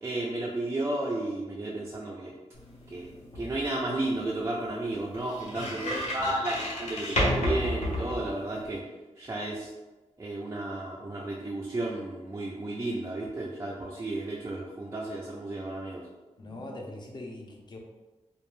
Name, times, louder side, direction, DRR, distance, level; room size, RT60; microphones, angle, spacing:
voice 1, 0.0-2.3 2.9-8.8 9.2-9.7 10.2-16.0, right 2 dB, 25° right, -4 dB, 0.3 m, -33 dB
sound 1, 2.5-8.8, left 1 dB, 85° left, 0.8 m, -33 dB
voice 2, 5.5-6.3 16.4-17.8, left 2 dB, 40° left, 0 dB, 0.5 m, -41 dB
2.5 x 2.0 x 3.0 m, 1.1 s
wide cardioid pair, 115°, 12 cm